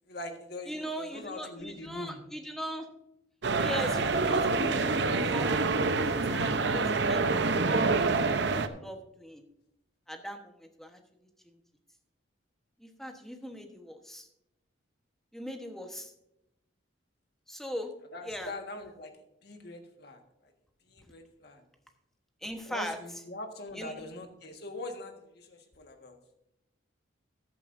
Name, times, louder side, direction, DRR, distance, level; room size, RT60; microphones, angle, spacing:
voice 1, 0.0-2.2 18.1-20.5 20.9-21.6 22.6-26.2, left 2 dB, 55° left, 4 dB, 1.6 m, -43 dB
voice 2, 0.7-2.9 3.6-7.2 7.6-9.4 10.1-11.0 11.4-11.5 12.8-14.3 15.3-16.1 17.5-17.9 18.2-18.5 22.4-23.0 23.8-23.9, equal, ahead, 4 dB, 1.1 m, -40 dB
sound 1, 3.4-8.7, right 3 dB, 60° right, 0.7 m, -27 dB
14.0 x 11.0 x 2.6 m, 0.85 s
head